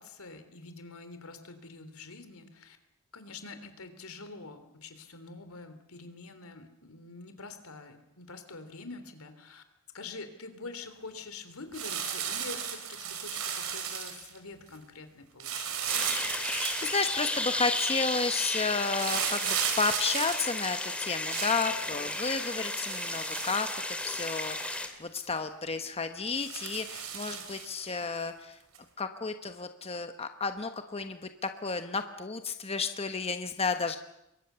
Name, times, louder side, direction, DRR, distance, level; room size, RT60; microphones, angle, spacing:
voice 1, 0.0-2.8 3.1-9.6 9.9-15.9, left 3 dB, 80° left, 9 dB, 3.5 m, -46 dB
sound 1, 11.7-14.4 15.4-17.4 18.9-21.7 22.6-24.3 24.7-24.8 25.2-25.4 26.3-27.9 28.7-28.8, right 8 dB, 85° right, 3.7 m, -35 dB
sound 2, 15.9-24.9, left 2 dB, 5° left, 2.7 m, -33 dB
voice 2, 16.5-28.6 29.0-34.0, left 4 dB, 30° left, 7 dB, 1.1 m, -32 dB
27.5 x 23.0 x 7.0 m, 0.84 s
head